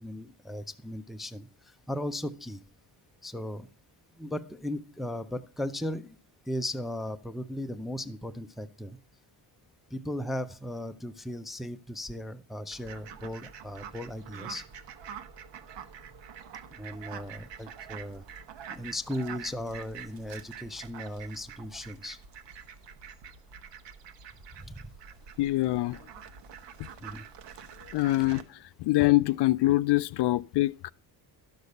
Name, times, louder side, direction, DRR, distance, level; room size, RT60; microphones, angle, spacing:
voice 1, 0.0-2.6 3.2-3.7 4.2-6.2 6.5-9.0 9.9-14.6 16.7-18.2 18.7-22.2 24.6-24.9 27.0-27.3, left 1 dB, ahead, 0.4 m, -37 dB
Fowl, 12.7-28.4, right 7 dB, 80° right, 1.2 m, -46 dB
voice 2, 25.4-26.0 27.9-28.4 28.8-30.9, left 18 dB, 70° left, 0.5 m, -24 dB
12.0 x 6.6 x 5.3 m
cardioid pair, 140°, 43 cm